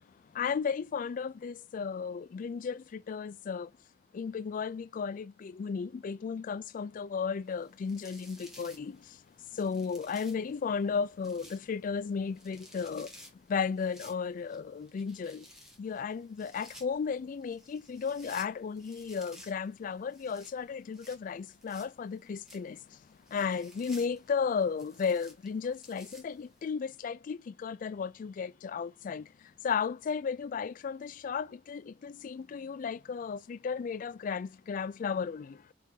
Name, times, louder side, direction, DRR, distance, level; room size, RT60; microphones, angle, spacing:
voice 1, 0.4-3.7 4.1-9.0 9.6-13.1 13.5-15.4 15.8-22.8 23.3-29.2 29.6-35.5, left 6 dB, 45° left, 0.3 m, -34 dB
sound 1, 7.5-26.7, left 1 dB, 5° right, 1.3 m, -56 dB
4.7 x 2.6 x 3.7 m
head